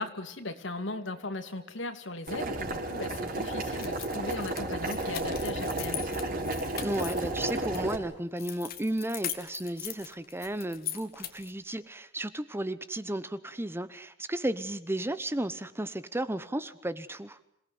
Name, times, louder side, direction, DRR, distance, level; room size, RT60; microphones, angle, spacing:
voice 1, 0.0-6.3, left 2 dB, 75° left, 8 dB, 2.6 m, -38 dB
Boiling, 2.3-8.0, right 2 dB, 50° right, 4.7 m, -32 dB
sound 1, 3.7-7.8 8.4-11.6, left 11 dB, 50° left, 2.0 m, -40 dB
voice 2, 6.8-17.4, right 1 dB, 15° right, 14 dB, 1.0 m, -34 dB
27.0 x 18.5 x 9.5 m, 0.72 s
head